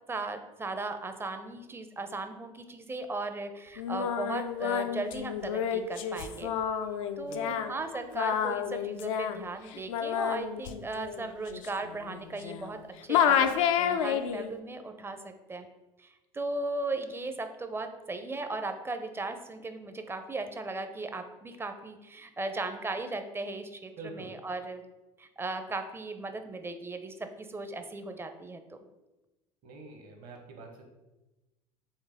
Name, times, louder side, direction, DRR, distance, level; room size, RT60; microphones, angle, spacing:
voice 1, 0.1-6.5 7.2-15.7 16.0-24.8 25.2-28.6, right 2 dB, 15° right, 7 dB, 0.5 m, -37 dB
Singing, 3.8-12.8 13.1-14.5, left 8 dB, 75° left, 0.4 m, -30 dB
voice 2, 24.0-24.3 29.6-30.8, right 3 dB, 55° right, 3 dB, 1.1 m, -45 dB
4.5 x 3.3 x 3.5 m, 1.1 s
hypercardioid pair, 75°, 17 cm